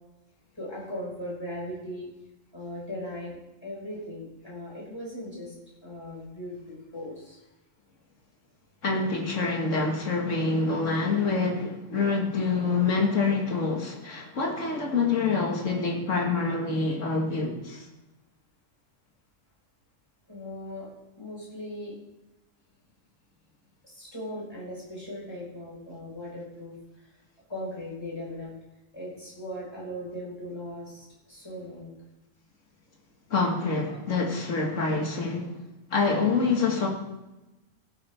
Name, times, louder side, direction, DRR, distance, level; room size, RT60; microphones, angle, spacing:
voice 1, 0.5-2.1 2.5-5.5 5.8-7.4 9.6-9.7 20.3-20.9 21.2-22.0 23.8-26.8 27.5-28.5 28.9-31.9 33.9-34.0, left 1 dB, 20° left, -6 dB, 4.8 m, -38 dB
voice 2, 8.8-17.8 33.3-35.5 35.9-36.9, left 4 dB, 75° left, 0 dB, 2.1 m, -26 dB
16.5 x 8.4 x 3.5 m, 1.0 s
omnidirectional pair, 1.3 m